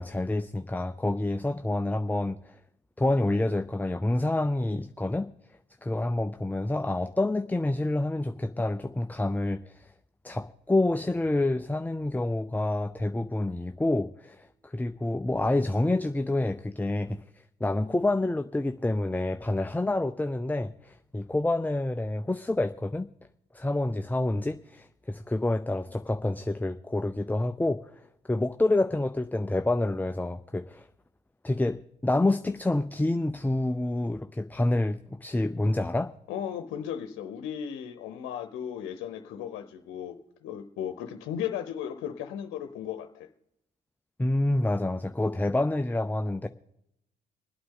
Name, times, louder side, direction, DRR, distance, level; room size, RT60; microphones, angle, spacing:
voice 1, 0.0-2.6 3.0-5.3 5.8-9.9 10.2-17.2 17.6-23.1 23.5-28.0 28.3-30.9 31.4-36.1 44.2-46.5, left 2 dB, 10° left, 0.5 m, -28 dB
voice 2, 36.3-43.3, left 9 dB, 80° left, 0.8 m, -36 dB
25.0 x 8.7 x 3.8 m
supercardioid pair, 55°, 20 cm